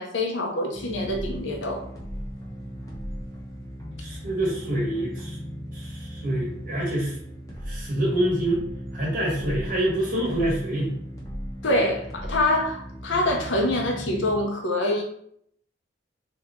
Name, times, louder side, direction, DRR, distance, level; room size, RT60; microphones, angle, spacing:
voice 1, 0.0-1.8 11.6-15.0, left 1 dB, 75° left, 2 dB, 0.7 m, -25 dB
sound 1, 0.7-14.4, equal, 15° left, 0.7 m, -37 dB
voice 2, 4.0-5.4 5.7-7.2 7.6-8.6 8.9-10.9, right 1 dB, 45° right, -5 dB, 1.3 m, -26 dB
2.9 x 2.4 x 3.6 m, 0.66 s
head